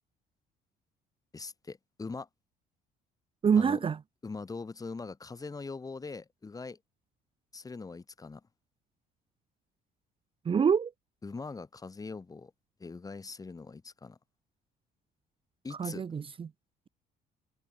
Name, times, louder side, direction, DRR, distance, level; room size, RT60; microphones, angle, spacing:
voice 1, 1.3-2.3 3.6-3.8 4.2-6.8 7.5-8.4 11.2-12.5 12.8-14.2 15.6-16.1, left 4 dB, 20° left, 2.2 m, -42 dB
voice 2, 3.4-4.0 10.4-10.9 15.8-16.5, right 6 dB, 30° right, 1.0 m, -26 dB
cardioid pair, 110°, 17 cm